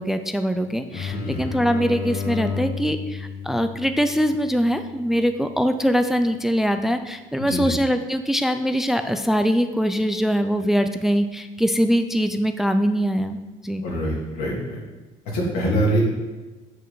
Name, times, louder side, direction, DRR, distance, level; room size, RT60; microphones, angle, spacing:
voice 1, 0.0-13.9, equal, ahead, 8 dB, 0.4 m, -22 dB
sound 1, 0.9-6.4, left 6 dB, 55° left, 1.5 m, -33 dB
voice 2, 1.1-1.4 7.4-7.7 13.8-14.8 15.3-16.0, equal, 75° left, -3 dB, 2.5 m, -24 dB
7.8 x 5.1 x 3.9 m, 1.2 s
supercardioid pair, 85°, 15 cm